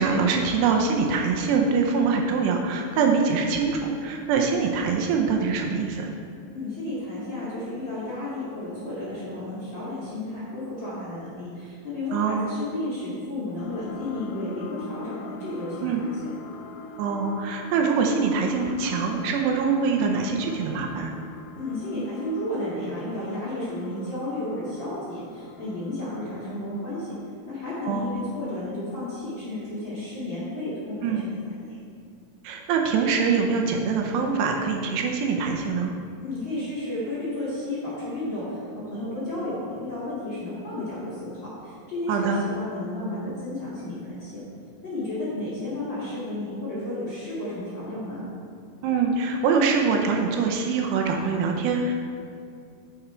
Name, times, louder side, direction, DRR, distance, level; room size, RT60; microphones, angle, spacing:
voice 1, 0.0-6.1 12.1-12.5 15.8-16.0 17.0-21.1 27.9-28.1 31.0-31.2 32.4-35.9 42.1-42.4 48.8-52.0, right 5 dB, 80° right, 2 dB, 2.7 m, -24 dB
voice 2, 6.5-16.3 21.5-27.1 27.4-31.8 36.2-38.6 38.9-44.4 44.8-48.2, left 1 dB, 35° left, -10 dB, 2.1 m, -32 dB
sound 1, 13.6-26.7 27.2-27.3, left 3 dB, 85° left, 2.9 m, -43 dB
9.8 x 6.9 x 4.4 m, 2.3 s
omnidirectional pair, 5.0 m